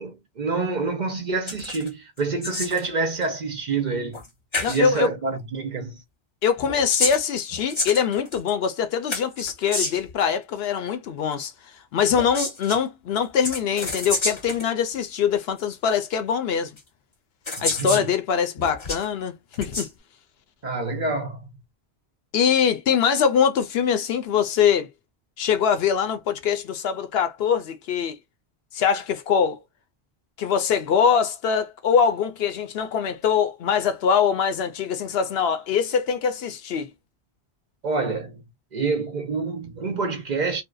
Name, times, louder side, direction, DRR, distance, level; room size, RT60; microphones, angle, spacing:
voice 1, 0.0-4.2 4.6-6.0 17.6-18.1 20.6-21.4 37.8-38.4 38.7-40.6, right 4 dB, 55° right, 0.6 m, -27 dB
sound 1, 1.5-1.9 2.2-2.9 4.1-4.3 4.5-4.8 6.6-8.5 9.1-10.1 12.1-12.8 13.4-14.7 15.6-15.7 16.8-16.9 17.5-18.1 18.6-19.1 19.5-19.9, left 2 dB, 30° left, 0.7 m, -29 dB
voice 2, 4.6-5.1 6.4-11.5 11.9-16.8 17.6-19.9 22.3-24.9 25.4-28.2 28.7-29.6 30.4-36.9, left 7 dB, 70° left, 0.8 m, -23 dB
2.6 x 2.1 x 2.2 m
omnidirectional pair, 1.1 m